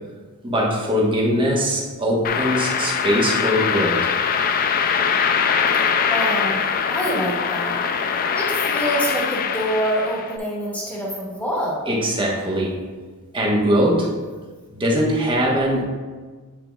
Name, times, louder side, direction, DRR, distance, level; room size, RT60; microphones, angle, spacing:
voice 1, 0.4-4.0 11.9-12.8 13.3-14.1 14.7-15.8, equal, 25° right, -4 dB, 1.2 m, -21 dB
sound 1, 2.2-10.3, left 6 dB, 40° left, 0.3 m, -22 dB
voice 2, 6.1-6.6 6.9-7.8 8.1-11.8, equal, 5° left, -6 dB, 1.6 m, -26 dB
9.3 x 4.7 x 2.3 m, 1.4 s
head